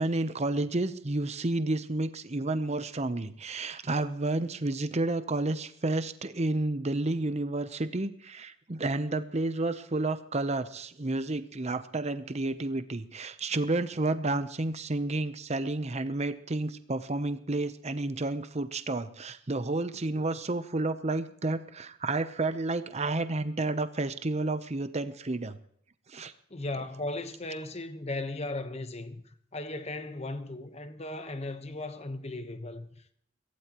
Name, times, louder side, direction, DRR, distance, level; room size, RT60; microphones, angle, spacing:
voice 1, 0.0-25.6 26.1-26.3, right 2 dB, 35° right, 0.8 m, -31 dB
voice 2, 26.5-33.1, left 2 dB, 35° left, 1.2 m, -37 dB
22.5 x 16.0 x 3.1 m
head